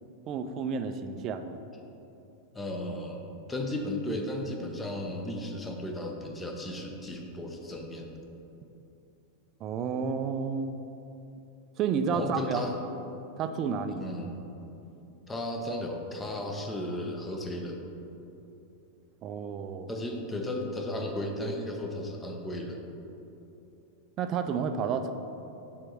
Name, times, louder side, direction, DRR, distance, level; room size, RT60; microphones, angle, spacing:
voice 1, 0.3-1.6 9.6-10.7 11.8-12.6 13.4-14.1 19.2-19.9 24.2-25.1, right 6 dB, 35° right, 8 dB, 0.4 m, -31 dB
voice 2, 2.5-8.2 12.1-12.8 14.0-14.4 15.3-17.8 19.9-22.8, left 1 dB, 15° left, 2 dB, 0.9 m, -35 dB
7.5 x 3.7 x 6.3 m, 2.9 s
figure-of-eight pair, 90°, 0 cm